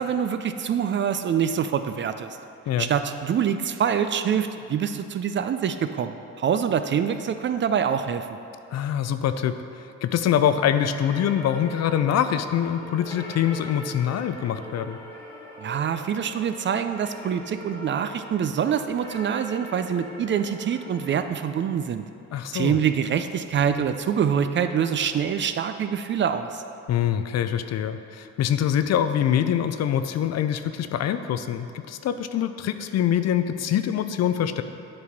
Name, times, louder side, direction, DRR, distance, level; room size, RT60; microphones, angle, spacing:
voice 1, 0.0-2.3 2.8-8.3 15.6-22.0 22.5-26.6, right 8 dB, 40° right, 9 dB, 0.4 m, -25 dB
voice 2, 8.7-9.6 10.0-15.0 22.3-22.7 26.9-34.6, left 9 dB, 60° left, 10 dB, 0.5 m, -24 dB
sound 1, 10.8-21.3, equal, 5° left, 1.6 m, -42 dB
8.6 x 4.1 x 4.7 m, 2.7 s
cardioid pair, 90°, 30 cm